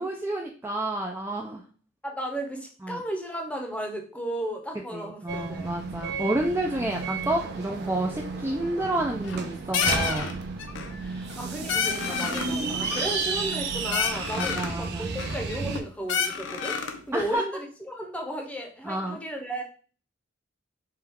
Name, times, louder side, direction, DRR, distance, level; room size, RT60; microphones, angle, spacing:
voice 1, 0.0-1.6 2.8-3.0 4.9-10.3 12.5-12.6 14.4-15.1 17.1-17.4 18.9-19.2, right 1 dB, 10° right, 0 dB, 0.3 m, -29 dB
voice 2, 2.0-5.7 11.0-16.8 17.1-19.6, right 1 dB, 5° left, 1 dB, 0.7 m, -34 dB
sound 1, 5.3-15.8, right 4 dB, 55° right, 0.6 m, -33 dB
sound 2, 9.1-9.5 9.7-10.3 10.6-11.0 11.3-11.4 11.7-12.5 12.8-13.6 13.9-14.8 15.2-15.8 16.1-17.0, left 6 dB, 65° left, 0.6 m, -29 dB
4.5 x 2.3 x 3.5 m, 0.41 s
head